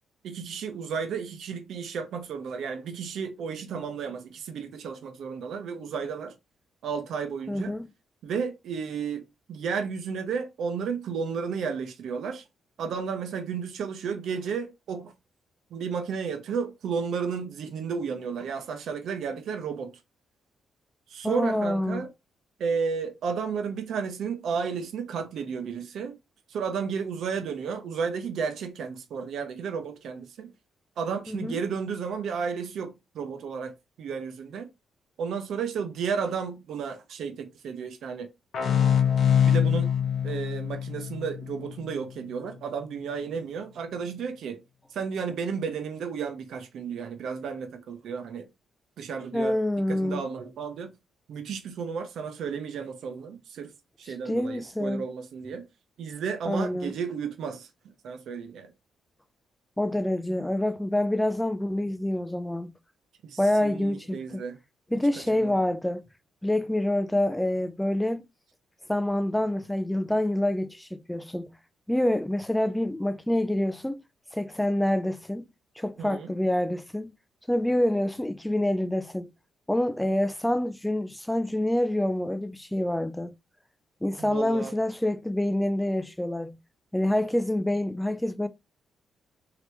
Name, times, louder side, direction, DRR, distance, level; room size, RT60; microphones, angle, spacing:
voice 1, 0.2-6.3 6.8-7.7 8.2-9.2 9.5-12.4 12.8-15.1 15.7-19.9 21.1-22.1 22.6-26.2 26.5-30.5 31.0-33.7 34.0-34.7 35.2-38.3 39.4-39.9 40.2-44.6 44.9-48.5 49.0-49.6 49.9-50.9 51.3-53.7 54.0-55.6 56.0-57.7 58.0-58.7 63.2-64.6 65.2-65.5 76.0-76.3 84.2-84.8, right 6 dB, 70° right, 0.8 m, -33 dB
voice 2, 7.5-7.9 21.2-22.0 31.3-31.6 49.3-50.2 54.3-55.0 56.5-56.9 59.8-62.7 63.4-64.4 64.9-66.0 66.4-68.2 68.9-71.5 71.9-74.0 74.3-75.4 75.8-77.1 77.5-79.3 79.7-83.3 84.0-86.6 86.9-88.5, left 1 dB, 5° left, 0.4 m, -27 dB
sound 1, 38.5-42.0, left 8 dB, 65° left, 0.7 m, -24 dB
2.9 x 2.9 x 3.3 m
cardioid pair, 105°, 0 cm